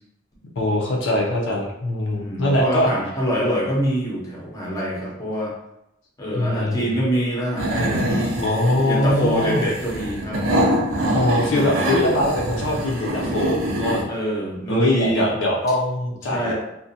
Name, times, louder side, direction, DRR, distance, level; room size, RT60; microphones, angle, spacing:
voice 1, 0.6-2.9 6.3-7.0 8.4-9.6 11.1-14.1 14.7-16.5, left 1 dB, 65° left, -2 dB, 0.5 m, -22 dB
voice 2, 2.1-5.5 6.2-8.4 8.8-10.4 11.1-12.3 14.1-15.3 16.3-16.5, right 1 dB, 20° left, -5 dB, 0.6 m, -25 dB
sound 1, 7.6-14.0, right 1 dB, 80° right, 0.5 m, -25 dB
2.5 x 2.1 x 2.6 m, 0.85 s
head